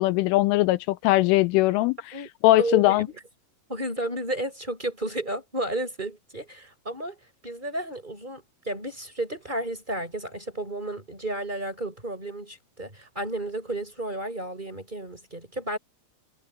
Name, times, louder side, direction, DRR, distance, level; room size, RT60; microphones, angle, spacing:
voice 1, 0.0-2.0 2.4-3.1, left 18 dB, 85° left, 3.1 m, -20 dB
voice 2, 2.6-3.2 3.7-7.2 7.4-15.8, right 1 dB, 10° right, 5.4 m, -32 dB
omnidirectional pair, 5.7 m